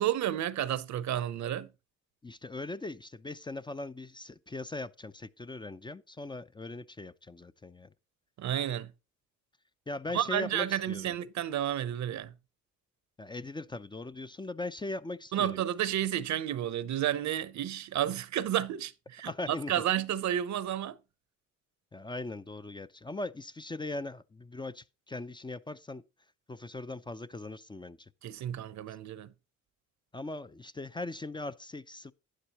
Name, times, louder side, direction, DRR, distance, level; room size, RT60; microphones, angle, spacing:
voice 1, 0.0-1.7 8.4-8.9 10.1-12.3 15.3-21.0 28.2-29.3, right 11 dB, 70° right, 0.8 m, -31 dB
voice 2, 2.2-7.9 9.9-11.1 13.2-15.6 19.2-19.7 21.9-26.0 26.5-28.1 30.1-32.1, left 2 dB, 15° left, 0.5 m, -40 dB
11.5 x 9.9 x 3.0 m
cardioid pair, 90°, 30 cm